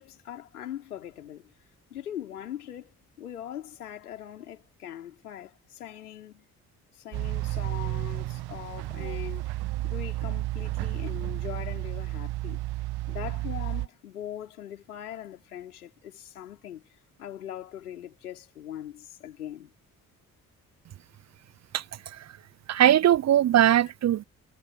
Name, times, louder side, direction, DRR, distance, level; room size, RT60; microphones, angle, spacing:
voice 1, 0.0-1.5 1.9-6.5 6.9-9.5 9.8-12.6 13.1-16.8 17.2-19.7, left 11 dB, 80° left, 4.6 m, -41 dB
sound 1, 7.1-13.9, right 17 dB, 60° right, 2.0 m, -32 dB
voice 2, 22.7-24.2, right 11 dB, 40° right, 0.7 m, -20 dB
figure-of-eight pair, 40°, 44 cm